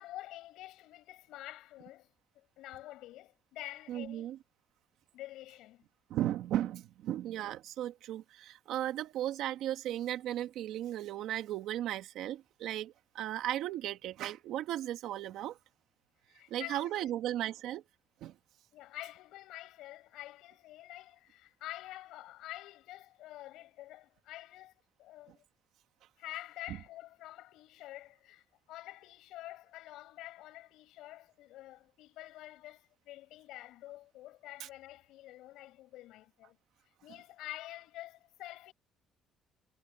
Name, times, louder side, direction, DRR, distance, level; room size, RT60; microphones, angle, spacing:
voice 1, 0.0-4.3 5.1-5.8 16.3-16.9 18.7-25.4 26.2-36.6 37.0-38.7, left 15 dB, 80° left, 7.3 m, -48 dB
voice 2, 3.9-4.4 6.1-15.6 16.5-17.8 18.2-18.4 26.7-26.8 34.6-34.7, right 12 dB, 70° right, 2.0 m, -36 dB
cardioid pair, 165°, 0 cm